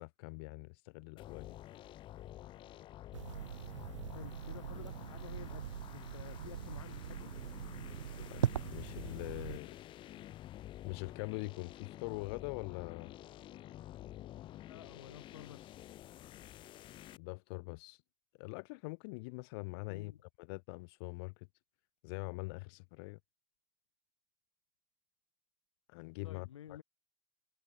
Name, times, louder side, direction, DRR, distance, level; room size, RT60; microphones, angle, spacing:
voice 1, 0.0-1.6 8.1-9.8 10.8-13.1 17.2-18.0 18.4-20.1 20.4-21.5 22.0-23.2 25.9-26.8, left 29 dB, 55° left, 3.6 m, -43 dB
sound 1, 1.2-17.2, left 13 dB, 35° left, 0.9 m, -50 dB
sound 2, 3.1-9.6, right 10 dB, 85° right, 1.8 m, -41 dB
voice 2, 4.1-5.6 5.9-7.3 14.7-15.8 19.9-20.2 26.2-26.8, left 10 dB, 85° left, 7.6 m, -51 dB
hypercardioid pair, 120°, 15 cm